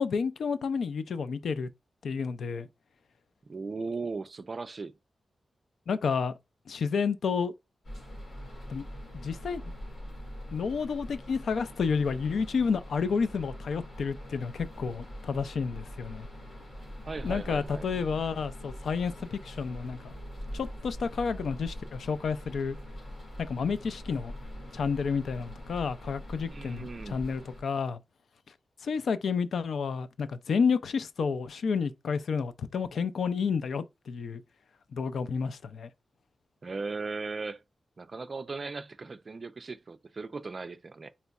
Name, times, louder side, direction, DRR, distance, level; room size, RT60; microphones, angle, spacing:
voice 1, 0.0-1.7 2.0-2.7 5.9-6.3 6.7-7.5 8.7-8.8 9.1-9.7 10.5-16.3 17.2-20.1 20.5-22.8 23.4-24.3 24.7-28.0 28.8-34.4 34.9-35.9, left 5 dB, 75° left, 0.4 m, -30 dB
voice 2, 3.5-4.9 17.0-17.9 26.5-27.2 36.6-37.6 38.0-41.1, right 4 dB, 35° right, 0.4 m, -37 dB
sound 1, 7.8-27.6, equal, 45° left, 2.5 m, -43 dB
4.2 x 4.0 x 2.3 m
wide cardioid pair, 165°, 0 cm